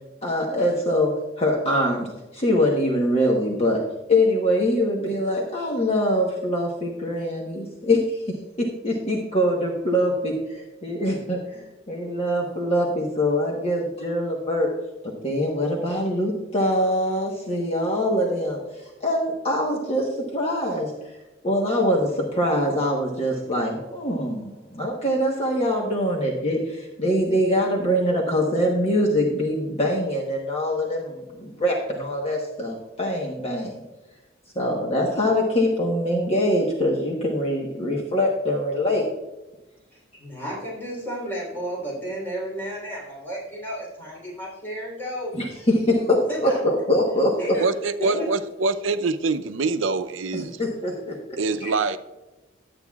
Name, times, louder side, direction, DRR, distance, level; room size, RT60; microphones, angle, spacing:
voice 1, 0.2-2.1 2.3-3.8 4.1-8.2 8.6-14.7 15.2-20.9 21.4-33.8 34.5-39.1 45.3-47.6 48.1-48.2 50.3-51.7, left 1 dB, 35° left, -1 dB, 1.1 m, -23 dB
voice 2, 39.9-45.4 46.2-46.6 47.4-47.6 48.0-48.3, equal, 10° left, -5 dB, 3.4 m, -32 dB
voice 3, 47.6-50.6 51.4-52.0, right 3 dB, 80° right, 11 dB, 0.6 m, -25 dB
11.5 x 8.8 x 2.4 m, 1.1 s
head